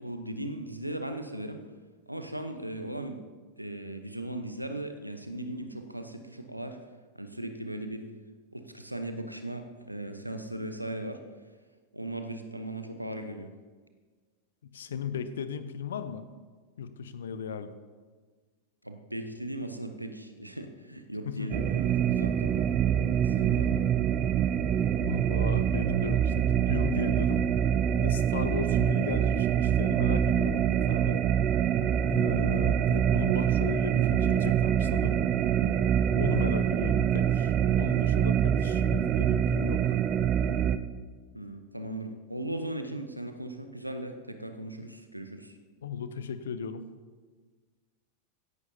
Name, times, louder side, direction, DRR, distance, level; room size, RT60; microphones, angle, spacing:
voice 1, 0.0-1.6 2.1-3.2 3.6-6.8 7.1-8.0 8.5-11.2 11.9-13.5 18.8-22.7 23.2-23.8 41.3-45.6, right 1 dB, 90° right, 7 dB, 0.9 m, -38 dB
voice 2, 14.6-16.2 16.8-17.7 21.2-21.5 25.0-27.5 28.0-31.2 32.1-35.2 36.1-40.0 45.8-46.8, left 6 dB, 65° left, 12 dB, 0.8 m, -36 dB
sound 1, 21.5-40.8, right 9 dB, 35° right, 0.5 m, -25 dB
16.0 x 10.5 x 2.8 m, 1.4 s
figure-of-eight pair, 90°, 0 cm